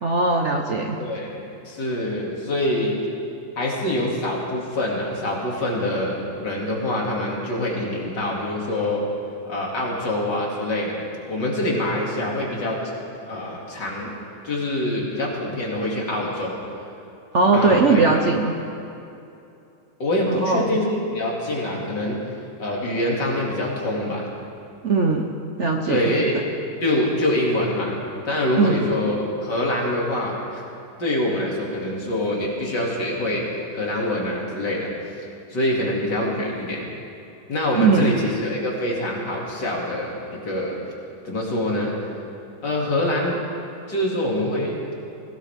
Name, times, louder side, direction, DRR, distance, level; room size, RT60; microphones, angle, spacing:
voice 1, 0.0-1.0 17.3-18.5 20.3-20.8 24.8-25.3 25.6-26.1 28.6-28.9 37.8-38.2, right 4 dB, 50° right, 3 dB, 1.0 m, -19 dB
voice 2, 1.0-2.9 3.6-9.0 9.5-12.8 13.3-14.1 14.4-16.6 17.5-18.2 20.0-22.2 22.6-24.3 25.9-26.4 26.8-28.0 28.2-30.6 31.0-33.5 33.7-34.9 35.5-36.9 37.5-40.1 40.4-40.8 41.2-41.9 42.6-43.3 43.9-44.8, left 1 dB, 65° left, -3 dB, 3.2 m, -25 dB
22.0 x 17.0 x 3.6 m, 2.7 s
omnidirectional pair, 2.0 m